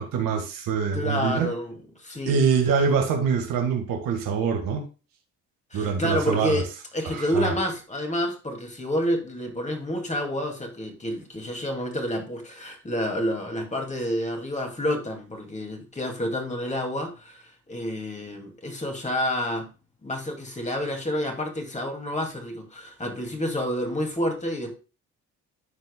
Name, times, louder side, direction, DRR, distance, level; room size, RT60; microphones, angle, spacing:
voice 1, 0.0-1.5 2.3-4.9 5.7-6.6 7.1-7.5, right 6 dB, 70° right, 1.8 m, -24 dB
voice 2, 0.9-2.4 5.7-6.7 6.9-19.7 20.0-24.7, left 1 dB, 20° left, 2.4 m, -29 dB
13.5 x 4.6 x 2.3 m
supercardioid pair, 60°, 35 cm